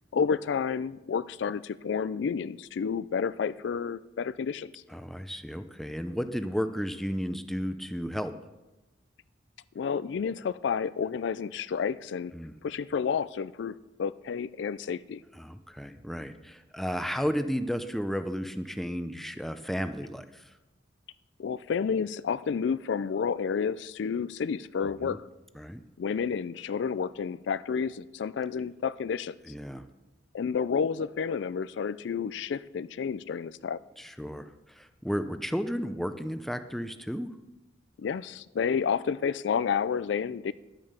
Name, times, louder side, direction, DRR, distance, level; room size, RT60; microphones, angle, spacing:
voice 1, 0.1-4.7 9.8-12.3 12.6-15.2 21.4-25.2 26.0-29.3 30.3-33.8 38.0-40.5, left 6 dB, 70° left, 17 dB, 0.3 m, -30 dB
voice 2, 4.9-8.3 12.3-12.6 15.3-20.5 25.0-25.2 25.5-25.8 29.5-29.9 34.0-37.3, equal, ahead, 9 dB, 0.5 m, -33 dB
11.0 x 9.0 x 6.6 m, 1.1 s
head